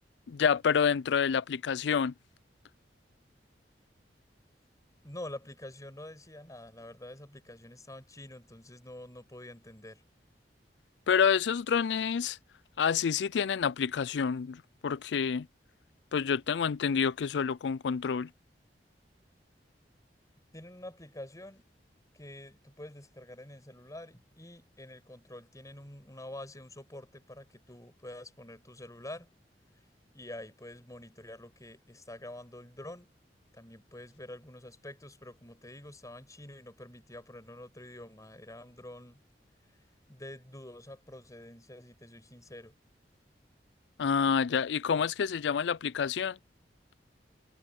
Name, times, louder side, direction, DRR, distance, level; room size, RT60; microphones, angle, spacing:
voice 1, 0.3-2.1 11.1-12.4 12.8-15.5 16.1-18.3 44.0-46.4, left 6 dB, 85° left, 0.4 m, -28 dB
voice 2, 5.0-10.0 20.5-21.7 22.1-29.3 30.1-33.1 33.5-39.2 40.1-42.7, left 1 dB, 20° left, 6.5 m, -47 dB
head